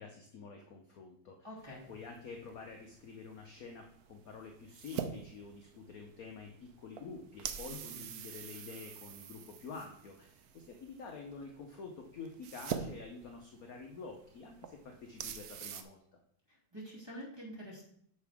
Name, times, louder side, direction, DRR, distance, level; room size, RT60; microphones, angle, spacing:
voice 1, 0.0-1.4 1.9-16.0, left 4 dB, 60° left, 3 dB, 1.0 m, -48 dB
voice 2, 1.4-1.9 7.7-8.0 16.5-17.8, equal, 10° right, -5 dB, 2.6 m, -47 dB
sound 1, 1.6-15.8, right 8 dB, 75° right, 0.8 m, -46 dB
9.7 x 6.6 x 3.5 m, 0.68 s
omnidirectional pair, 2.3 m